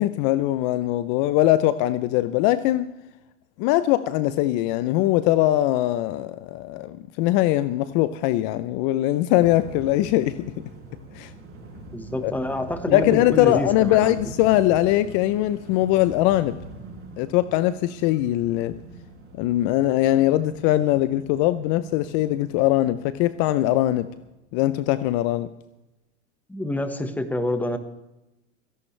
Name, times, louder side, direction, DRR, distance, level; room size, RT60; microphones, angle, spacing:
voice 1, 0.0-2.9 3.6-10.5 11.1-11.3 12.2-12.3 12.9-16.6 17.2-18.7 19.4-24.1 24.5-25.5, left 15 dB, 45° left, 14 dB, 0.7 m, -21 dB
sound 1, 9.3-24.3, right 2 dB, 30° right, 5.7 m, -43 dB
voice 2, 11.9-14.1 26.5-27.8, left 1 dB, 5° left, 8 dB, 1.4 m, -27 dB
29.0 x 11.0 x 3.3 m, 0.93 s
supercardioid pair, 125°, 40 cm